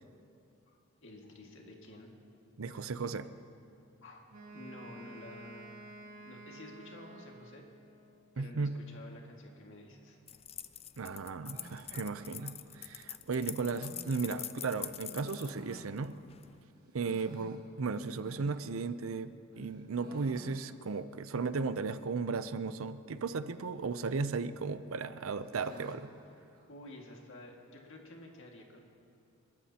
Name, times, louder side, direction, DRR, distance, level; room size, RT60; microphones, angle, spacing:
voice 1, 0.7-2.1 2.7-2.8 3.0-3.2 4.0-5.8 6.1-7.7 8.3-10.2 26.7-28.8, left 1 dB, 65° left, 0 dB, 2.0 m, -51 dB
voice 2, 2.6-3.3 8.4-8.7 11.0-16.1 16.9-26.1, right 4 dB, 70° right, 13 dB, 0.6 m, -35 dB
Wind instrument woodwind instrument, 4.3-8.0, right 2 dB, 85° right, 2.6 m, -51 dB
sound 1, 10.3-16.5, left 11 dB, 30° left, 0.4 m, -45 dB
sound 2, 11.5-16.5 16.8-19.2 19.5-21.1 21.3-21.4 21.6-21.7 22.4-22.8 23.8-24.4 24.8-27.2, right 1 dB, 45° right, 1.6 m, -55 dB
30.0 x 13.5 x 2.9 m, 2.7 s
head